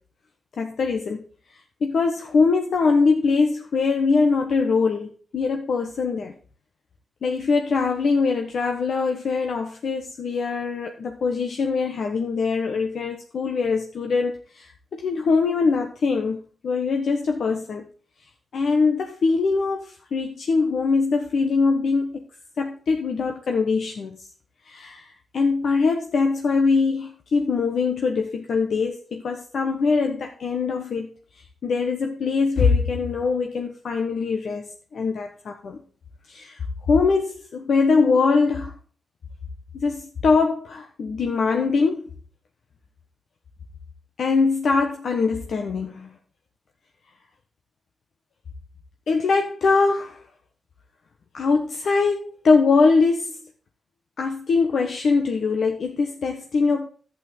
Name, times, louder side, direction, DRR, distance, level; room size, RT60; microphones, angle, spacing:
voice 1, 0.6-1.2 1.8-6.3 7.2-17.8 18.5-22.3 22.6-24.2 24.7-31.1 31.6-35.8 36.3-36.6 36.9-38.7 39.7-42.1 44.2-46.1 49.1-50.2 51.3-53.4 54.2-56.9, left 4 dB, 70° left, 1.3 m, -22 dB
11.5 x 8.5 x 3.8 m
cardioid pair, 95°, 0 cm